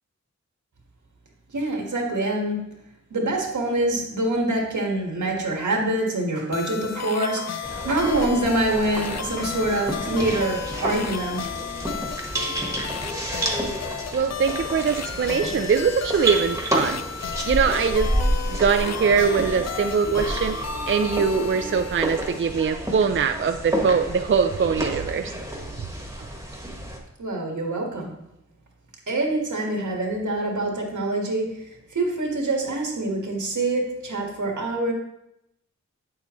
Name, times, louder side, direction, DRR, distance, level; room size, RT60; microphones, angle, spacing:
voice 1, 1.5-2.6 3.1-11.5 27.2-28.1 29.1-31.6 31.9-34.9, right 2 dB, 80° right, 0 dB, 1.7 m, -25 dB
sound 1, 6.5-22.7, left 8 dB, 65° left, 0.4 m, -34 dB
sound 2, 7.6-27.0, right 1 dB, 10° right, 1.3 m, -30 dB
voice 2, 14.1-17.0 17.4-18.1 18.5-20.6 20.9-25.3, right 6 dB, 45° right, 7 dB, 0.4 m, -22 dB
8.3 x 6.9 x 3.1 m, 0.85 s
cardioid pair, 50°, 29 cm